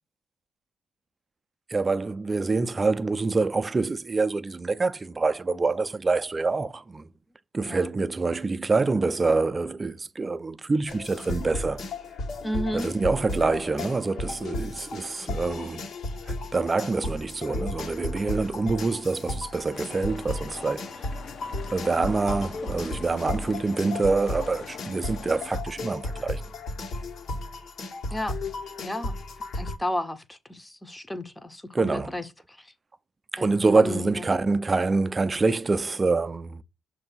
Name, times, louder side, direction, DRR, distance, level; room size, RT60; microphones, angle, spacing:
voice 1, 1.7-7.1 7.5-11.8 12.7-15.9 16.3-21.0 21.7-26.5 31.7-32.1 33.3-36.6, right 3 dB, 25° right, 0.4 m, -26 dB
sound 1, 10.9-29.8, left 2 dB, 70° left, 1.3 m, -34 dB
voice 2, 12.4-12.9 28.1-28.4 28.8-29.1 29.5-32.7 33.4-34.3, left 1 dB, 10° left, 0.6 m, -33 dB
sound 2, 19.7-25.6, left 6 dB, 55° left, 0.7 m, -43 dB
6.5 x 2.7 x 5.5 m
cardioid pair, 90°, 0 cm